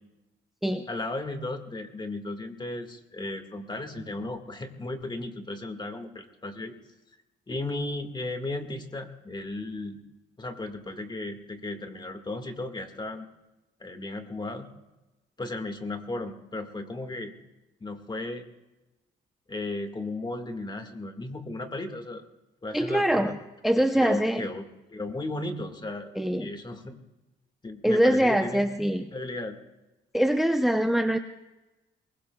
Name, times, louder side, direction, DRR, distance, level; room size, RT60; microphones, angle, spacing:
voice 1, 0.9-6.7 7.5-10.0 10.4-13.3 13.8-14.7 15.4-17.3 17.8-18.4 19.5-22.2 22.6-23.4 24.0-24.6 24.9-26.1 26.4-27.0 27.6-28.7 29.1-29.6, left 2 dB, 20° left, 6 dB, 1.9 m, -35 dB
voice 2, 22.7-23.4 23.6-24.4 26.2-26.5 27.8-29.1 30.1-31.2, right 1 dB, ahead, 6 dB, 0.8 m, -23 dB
23.0 x 21.0 x 2.4 m, 1.0 s
cardioid pair, 90°, 20 cm